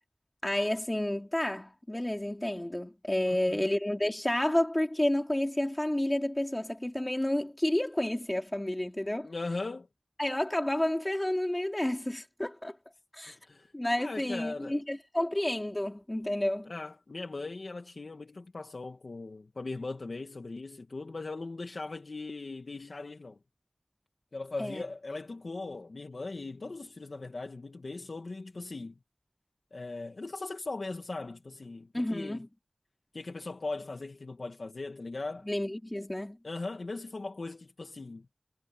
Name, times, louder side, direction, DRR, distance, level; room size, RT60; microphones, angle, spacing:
voice 1, 0.4-9.3 10.2-12.8 13.1-13.4 13.7-16.7 24.6-24.8 31.9-32.5 35.5-36.4, left 1 dB, 25° left, 4.3 m, -30 dB
voice 2, 3.3-3.7 9.2-9.9 13.3-13.7 14.0-14.8 16.7-23.4 24.3-29.0 29.7-32.5 33.1-35.5 36.4-38.3, left 3 dB, 90° left, 2.0 m, -39 dB
wide cardioid pair, 50°, 0 cm